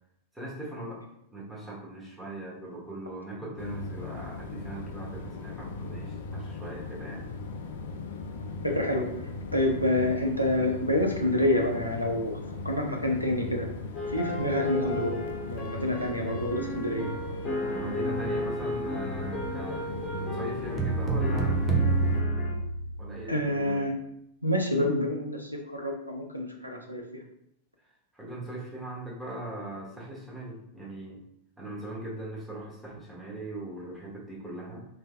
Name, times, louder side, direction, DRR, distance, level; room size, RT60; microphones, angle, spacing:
voice 1, 0.3-1.0 1.3-7.3 17.7-21.6 23.0-23.9 28.1-31.2 31.6-34.9, right 1 dB, 5° right, -5 dB, 1.2 m, -40 dB
sound 1, 3.6-22.2, left 3 dB, 55° left, 0.4 m, -38 dB
voice 2, 8.6-9.1 9.5-12.3 12.6-13.7 14.1-17.1 23.3-23.9 24.4-27.2, left 1 dB, 90° right, 1 dB, 0.6 m, -28 dB
sound 2, 13.9-22.5, left 1 dB, 25° left, 1.1 m, -35 dB
sound 3, 20.8-23.3, right 3 dB, 20° right, 0.6 m, -27 dB
3.3 x 3.2 x 2.2 m, 0.75 s
figure-of-eight pair, 90°, 0 cm